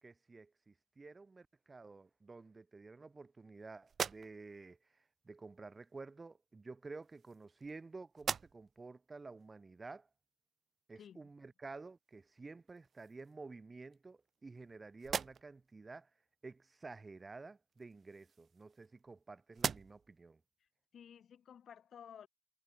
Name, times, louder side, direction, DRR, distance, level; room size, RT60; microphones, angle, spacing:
voice 1, 0.0-10.1 10.9-16.1 16.4-20.4, right 3 dB, 45° right, 1.4 m, -52 dB
sound 1, 3.9-4.7 5.8-6.0 6.9-7.8 8.1-8.9 9.4-9.5 12.1-12.2 12.7-13.4 13.9-14.7 15.0-15.7 17.7-19.2 19.5-20.2, right 7 dB, 75° right, 0.5 m, -42 dB
voice 2, 20.9-22.3, left 8 dB, 85° left, 5.9 m, -54 dB
cardioid pair, 45°, 0 cm